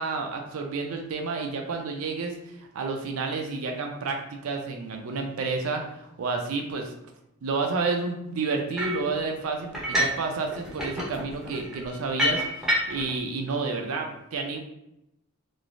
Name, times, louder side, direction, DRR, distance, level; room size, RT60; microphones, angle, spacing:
voice 1, 0.0-2.4 2.7-6.9 7.4-14.6, right 4 dB, 70° right, 3 dB, 0.4 m, -30 dB
sound 1, 8.8-9.1 9.7-10.2 10.5-13.1, equal, ahead, 0.6 m, -28 dB
3.0 x 2.0 x 2.4 m, 0.84 s
head